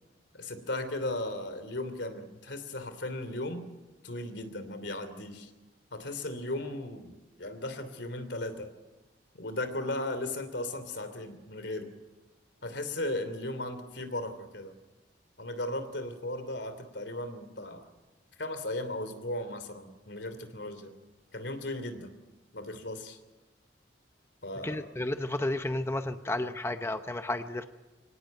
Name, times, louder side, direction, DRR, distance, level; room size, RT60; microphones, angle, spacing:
voice 1, 0.3-3.7 4.0-5.5 5.9-8.7 9.3-11.9 12.6-14.8 15.4-17.9 18.4-20.9 21.3-22.1 22.5-23.2 24.4-24.9, left 1 dB, 75° left, 10 dB, 3.0 m, -36 dB
voice 2, 24.6-27.7, left 1 dB, 15° left, 8 dB, 0.8 m, -32 dB
24.5 x 18.0 x 9.3 m, 1.1 s
head